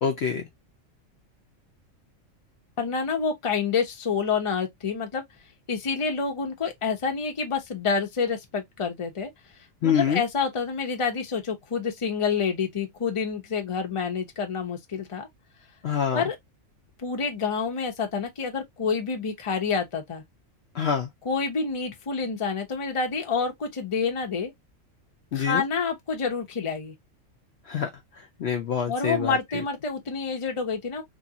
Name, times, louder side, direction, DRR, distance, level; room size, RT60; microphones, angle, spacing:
voice 1, 0.0-0.4 9.8-10.2 15.8-16.2 20.7-21.1 25.3-25.6 27.7-29.6, left 7 dB, 60° left, 0.8 m, -26 dB
voice 2, 2.8-5.2 5.7-9.3 9.8-15.3 16.1-16.3 17.0-20.2 21.2-24.5 25.3-26.9 28.9-31.0, left 5 dB, 30° left, 0.7 m, -28 dB
3.1 x 2.5 x 2.8 m
omnidirectional pair, 1.4 m